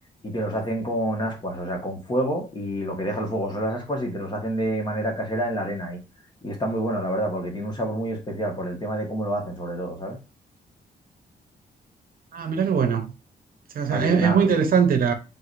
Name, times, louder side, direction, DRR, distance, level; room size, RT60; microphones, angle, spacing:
voice 1, 0.2-6.0 6.4-10.2 13.9-14.5, equal, 25° left, 1.5 m, -28 dB
voice 2, 12.3-13.1 13.7-15.1, right 6 dB, 60° right, 0.8 m, -21 dB
4.8 x 4.0 x 2.6 m
wide cardioid pair, 155°, 17 cm